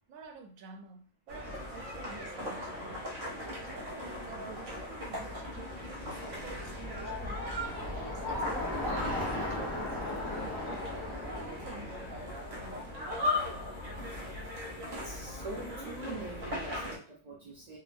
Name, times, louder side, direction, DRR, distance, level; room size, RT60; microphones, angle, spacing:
voice 1, 0.1-2.7 3.2-5.8 6.3-7.5 7.8-12.0 17.4-17.6, right 4 dB, 85° right, 1.1 m, -50 dB
sound 1, 1.3-17.0, left 1 dB, 65° right, 1.5 m, -38 dB
Bicycle, 4.9-13.2, left 1 dB, 25° left, 0.7 m, -39 dB
voice 2, 14.9-17.8, right 2 dB, 40° right, 0.6 m, -43 dB
3.9 x 2.1 x 2.5 m
omnidirectional pair, 1.4 m